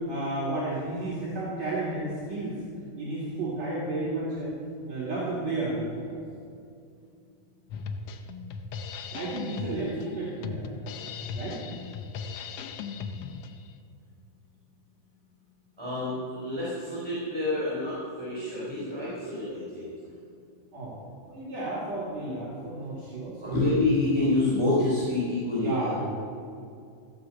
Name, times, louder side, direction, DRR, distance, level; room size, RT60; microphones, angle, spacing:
voice 1, 0.0-2.5 3.0-4.5 4.8-6.2 9.1-10.7 11.3-11.6 20.7-21.0 21.3-23.6 25.5-26.2, right 2 dB, 55° right, -7 dB, 3.6 m, -32 dB
Drum kit, 7.7-13.7, left 5 dB, 80° left, 1.3 m, -37 dB
voice 2, 15.8-19.9 23.4-26.0, left 2 dB, 10° right, -8 dB, 3.6 m, -27 dB
15.5 x 8.5 x 7.1 m, 2.4 s
omnidirectional pair, 3.7 m